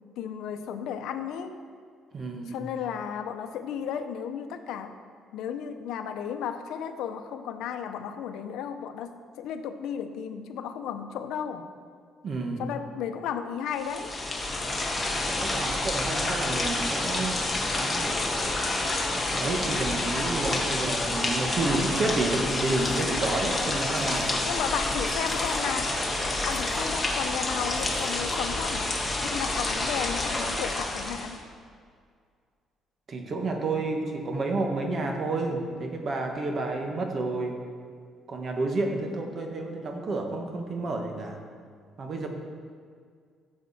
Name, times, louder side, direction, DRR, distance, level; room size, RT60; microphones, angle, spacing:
voice 1, 0.2-1.6 2.5-4.9 5.3-11.7 12.6-14.1 24.4-26.0 26.4-28.9 29.2-31.4, left 8 dB, 85° left, 8 dB, 0.8 m, -34 dB
voice 2, 2.1-2.5 12.2-12.6 15.3-17.4 17.7-18.2 19.3-24.4 33.1-37.6 38.3-41.4 42.0-42.3, right 2 dB, 40° right, 3 dB, 1.4 m, -30 dB
sound 1, 13.7-31.4, left 2 dB, 15° left, 1.5 m, -28 dB
sound 2, 22.5-28.5, left 4 dB, 40° left, 1.5 m, -47 dB
14.0 x 7.4 x 4.3 m, 2.1 s
cardioid pair, 140°, 0 cm